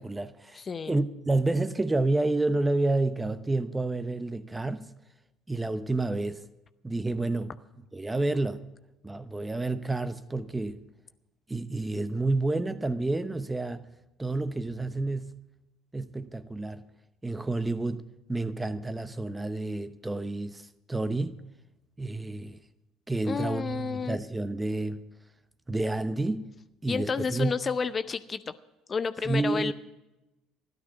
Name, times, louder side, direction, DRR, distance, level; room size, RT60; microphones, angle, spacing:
voice 1, 0.0-0.6 0.9-4.9 5.5-6.4 6.8-7.5 7.9-8.6 9.0-10.8 11.5-13.8 14.2-15.3 15.9-16.8 17.2-18.0 18.3-20.6 20.9-21.4 22.0-22.6 23.1-25.0 25.7-26.5 26.8-27.6 29.2-29.7, right 2 dB, 15° right, 0.9 m, -29 dB
voice 2, 0.6-1.0 23.3-24.2 26.9-28.5 28.9-29.7, left 5 dB, 35° left, 0.6 m, -31 dB
13.5 x 12.0 x 5.9 m
hypercardioid pair, 60°, 0 cm